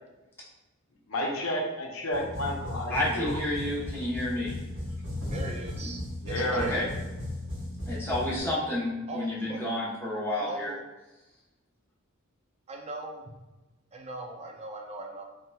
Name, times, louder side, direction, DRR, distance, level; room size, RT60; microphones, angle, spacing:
voice 1, 1.1-3.4 6.2-6.7, left 1 dB, 80° left, 0 dB, 0.7 m, -31 dB
sound 1, 2.1-8.4, left 1 dB, 75° right, 1.3 m, -36 dB
voice 2, 2.9-4.5 6.5-6.9 7.9-10.7, left 1 dB, 10° left, -8 dB, 0.9 m, -30 dB
voice 3, 5.3-6.8 9.1-9.6 10.4-10.8 12.7-13.3 13.9-15.2, right 2 dB, 30° right, 2 dB, 0.4 m, -40 dB
3.3 x 2.8 x 2.2 m, 1.1 s
head